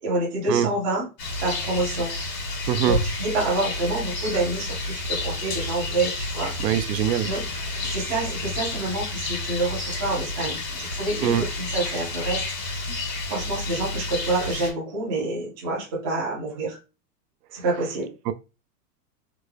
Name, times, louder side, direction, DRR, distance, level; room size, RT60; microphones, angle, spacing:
voice 1, 0.0-1.1 1.4-2.1 2.8-6.5 7.2-7.4 7.8-12.4 13.3-16.8 17.5-18.1, right 2 dB, 15° right, 0.3 m, -27 dB
Rain, 1.2-14.7, left 2 dB, 80° left, 1.8 m, -30 dB
voice 2, 2.7-3.0 6.6-7.3 11.2-11.4 18.3-18.4, right 10 dB, 85° right, 0.6 m, -22 dB
3.5 x 2.0 x 3.2 m
supercardioid pair, 155°, 48 cm